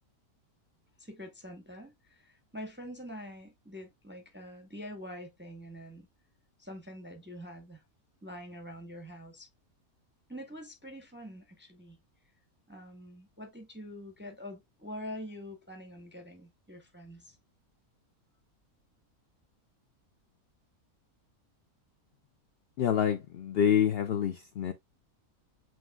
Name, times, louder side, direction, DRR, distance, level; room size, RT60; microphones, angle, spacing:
voice 1, 1.0-6.1 6.6-7.8 8.2-9.5 10.3-12.0 12.7-17.4, equal, 10° right, 0.6 m, -45 dB
voice 2, 22.8-24.7, left 9 dB, 70° left, 0.5 m, -27 dB
7.8 x 3.0 x 2.2 m
omnidirectional pair, 1.6 m